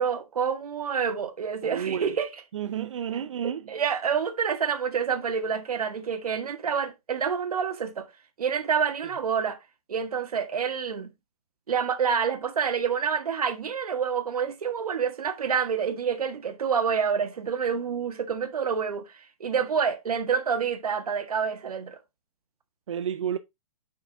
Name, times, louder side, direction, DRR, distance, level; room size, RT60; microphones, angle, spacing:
voice 1, 0.0-2.3 3.1-8.1 8.4-9.6 9.9-11.1 11.7-22.0, right 6 dB, 85° right, 1.6 m, -28 dB
voice 2, 1.6-2.1 2.5-3.6 22.9-23.4, right 9 dB, 55° right, 0.5 m, -30 dB
6.4 x 5.8 x 3.5 m
hypercardioid pair, 175°, 19 cm